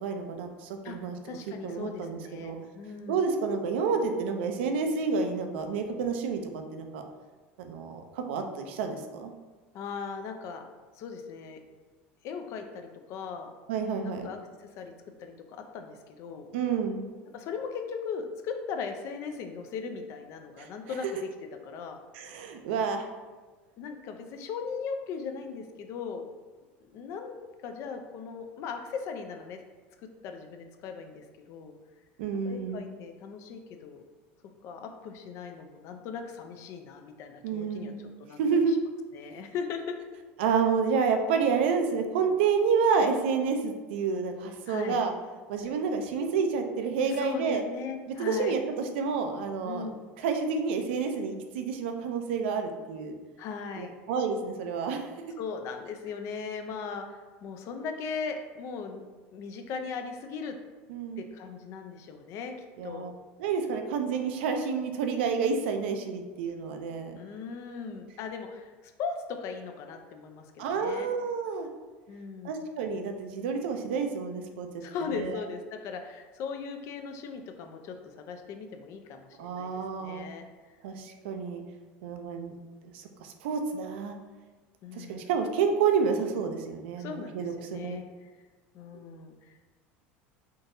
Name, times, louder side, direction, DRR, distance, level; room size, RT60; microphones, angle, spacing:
voice 1, 0.0-1.1 1.6-2.6 3.1-7.0 7.6-9.3 13.7-14.3 16.5-17.0 20.6-20.9 22.1-23.1 32.2-32.8 37.4-38.0 38.4-38.8 40.4-45.1 45.5-47.6 48.1-49.9 50.2-53.2 53.8-55.1 60.9-61.2 62.8-63.1 63.4-67.1 70.6-71.7 72.4-74.7 75.1-75.4 79.4-80.2 80.8-81.6 82.0-82.5 82.9-84.1 84.9-88.0, right 5 dB, 85° right, 5 dB, 0.4 m, -29 dB
voice 2, 1.2-3.2 9.7-10.6 10.9-11.6 12.2-13.5 14.0-14.9 15.2-16.5 17.3-21.3 21.6-22.0 23.8-26.2 26.9-27.4 27.6-29.6 30.2-31.7 32.4-34.0 34.6-37.9 38.2-38.4 39.1-40.0 44.7-45.0 47.1-48.5 49.6-50.0 53.4-53.9 55.4-59.0 59.3-60.6 61.2-62.6 62.8-63.1 67.1-70.5 70.8-71.1 72.1-72.6 74.8-80.8 84.8-85.3 87.0-88.3 88.7-89.8, left 5 dB, 55° left, 5 dB, 0.4 m, -38 dB
3.7 x 2.7 x 2.6 m, 1.3 s
supercardioid pair, 110°, 6 cm